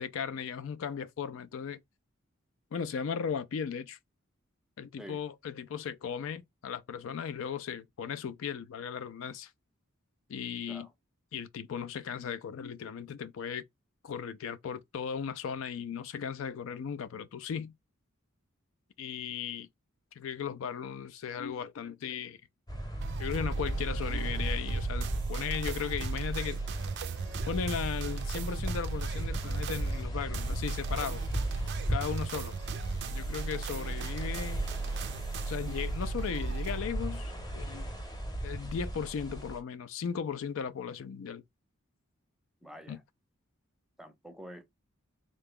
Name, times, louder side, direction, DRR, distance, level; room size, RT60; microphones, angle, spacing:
voice 1, 0.0-1.8 2.7-4.0 4.8-9.5 10.3-10.9 11.3-13.6 14.0-17.7 19.0-19.7 20.2-22.4 23.2-26.6 27.4-31.2 31.9-32.5 33.1-34.7 35.5-37.9 38.4-41.4 42.9-43.0, left 7 dB, 70° left, 0.4 m, -36 dB
sound 1, 22.7-39.6, right 1 dB, 20° left, 0.8 m, -37 dB
sound 2, 23.0-36.8, right 4 dB, 55° right, 0.3 m, -36 dB
voice 2, 42.6-43.0 44.0-44.7, equal, ahead, 0.5 m, -47 dB
3.7 x 2.3 x 3.6 m
head